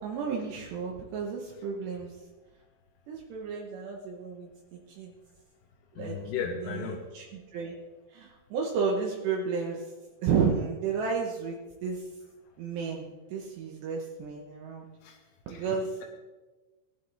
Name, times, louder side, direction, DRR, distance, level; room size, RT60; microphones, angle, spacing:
voice 1, 0.0-2.2 3.1-5.1 5.9-6.2 6.6-7.7 8.1-9.9 10.2-12.1 12.6-14.9 15.5-16.0, right 5 dB, 70° right, -1 dB, 3.1 m, -32 dB
voice 2, 6.0-7.0 15.0-15.2 15.5-15.6, left 6 dB, 75° left, 0 dB, 2.9 m, -35 dB
18.5 x 10.5 x 3.4 m, 1.2 s
omnidirectional pair, 5.5 m